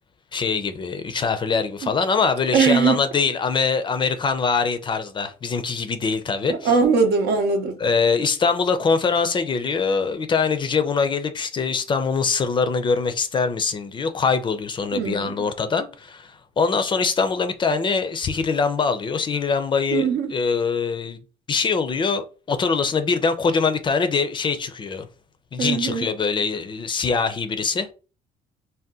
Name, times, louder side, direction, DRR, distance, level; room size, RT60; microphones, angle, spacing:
voice 1, 0.3-6.7 7.8-21.2 21.5-25.1 25.5-27.9, left 5 dB, 30° left, 0.4 m, -23 dB
voice 2, 2.5-3.0 6.5-7.7 14.9-15.5 19.9-20.3 25.6-26.1, right 5 dB, 80° right, 0.7 m, -21 dB
2.7 x 2.2 x 3.5 m
cardioid pair, 110°, 17 cm